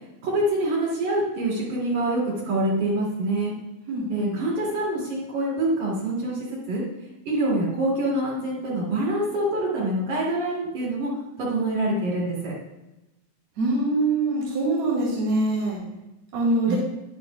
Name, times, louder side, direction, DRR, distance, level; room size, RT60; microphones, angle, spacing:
voice 1, 0.2-3.5 4.1-6.8 7.3-11.1 11.4-12.5 16.7-16.8, right 1 dB, 80° right, -6 dB, 4.0 m, -25 dB
voice 2, 3.9-4.4 13.6-15.8 16.3-16.8, right 2 dB, 60° right, -5 dB, 3.5 m, -24 dB
10.5 x 10.0 x 2.3 m, 0.97 s
omnidirectional pair, 3.4 m